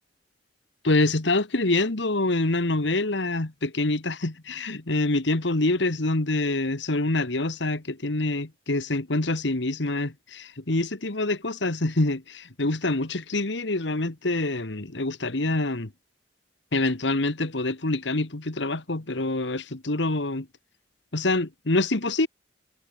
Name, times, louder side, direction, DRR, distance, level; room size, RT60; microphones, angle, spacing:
voice 1, 0.8-15.9 16.7-20.5 21.1-22.3, left 2 dB, 70° left, 1.7 m, -26 dB
head